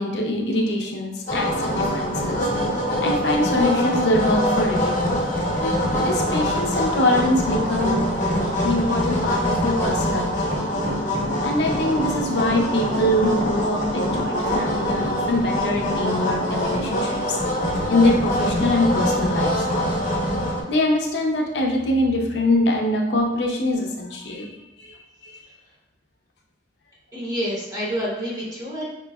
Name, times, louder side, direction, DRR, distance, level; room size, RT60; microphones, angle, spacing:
voice 1, 0.0-2.4 3.0-5.1 6.0-8.1 8.6-10.6 11.4-17.4 17.9-19.6 20.7-24.5 24.8-24.9 25.2-25.4, left 1 dB, 70° left, 0 dB, 0.6 m, -23 dB
sound 1, 1.3-20.6, equal, 50° left, 1.0 m, -24 dB
voice 2, 27.1-28.9, equal, 20° right, -6 dB, 1.2 m, -28 dB
5.0 x 3.0 x 2.3 m, 0.91 s
head